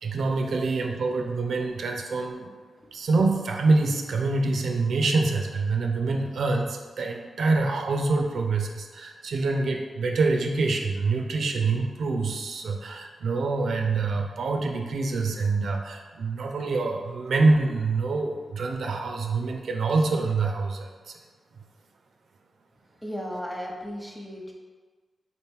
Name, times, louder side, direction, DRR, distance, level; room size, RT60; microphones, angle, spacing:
voice 1, 0.0-2.5 2.9-21.2, right 3 dB, 75° right, 2 dB, 0.4 m, -26 dB
voice 2, 0.5-0.9 23.0-24.5, equal, 5° left, -1 dB, 0.8 m, -36 dB
3.9 x 2.9 x 3.5 m, 1.4 s
supercardioid pair, 45°, 0 cm